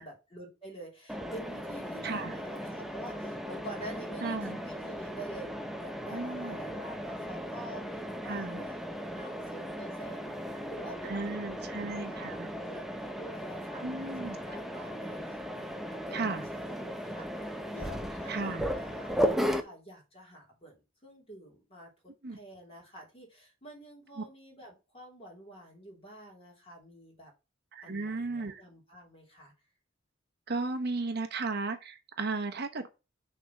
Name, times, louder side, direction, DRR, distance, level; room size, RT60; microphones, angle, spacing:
voice 1, 0.0-21.9 22.3-27.3 27.8-29.5, right 1 dB, 30° left, 3.2 m, -48 dB
Mechanisms, 1.1-19.6, equal, ahead, 0.7 m, -36 dB
voice 2, 2.0-2.3 4.2-4.6 6.1-6.6 8.2-8.6 11.0-12.5 13.8-14.4 16.1-16.4 18.3-18.7 22.2-22.4 24.2-24.3 27.7-28.6 30.5-32.9, right 3 dB, 55° right, 0.9 m, -35 dB
6.4 x 3.7 x 5.8 m
head